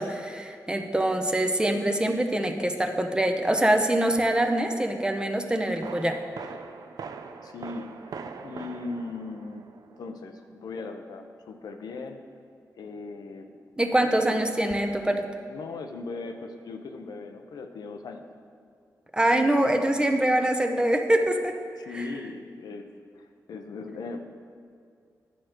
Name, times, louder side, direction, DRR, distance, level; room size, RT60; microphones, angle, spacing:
voice 1, 0.0-6.2 13.8-15.3 19.1-21.5 21.9-22.0, right 1 dB, 15° right, 5 dB, 0.7 m, -24 dB
sound 1, 4.2-4.5 5.8-10.2 14.7-15.1, right 5 dB, 75° right, 0.5 m, -42 dB
voice 2, 7.4-12.2 12.8-13.6 14.1-14.5 15.5-18.3 19.4-20.0 21.8-22.9 23.1-24.2, left 3 dB, 90° left, 5 dB, 0.6 m, -39 dB
10.0 x 6.3 x 4.4 m, 2.3 s
cardioid pair, 80°, 7 cm